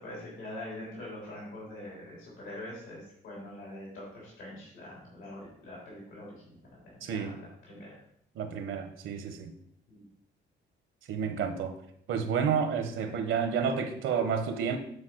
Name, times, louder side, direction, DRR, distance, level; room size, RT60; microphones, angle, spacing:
voice 1, 0.0-6.6 6.9-7.9 9.9-10.0 12.8-13.2, left 1 dB, 85° left, -5 dB, 3.2 m, -44 dB
voice 2, 7.0-7.4 8.4-9.5 11.1-11.7 12.1-14.8, right 6 dB, 80° right, 8 dB, 1.0 m, -30 dB
8.6 x 4.3 x 4.6 m, 0.71 s
cardioid pair, 90°, 20 cm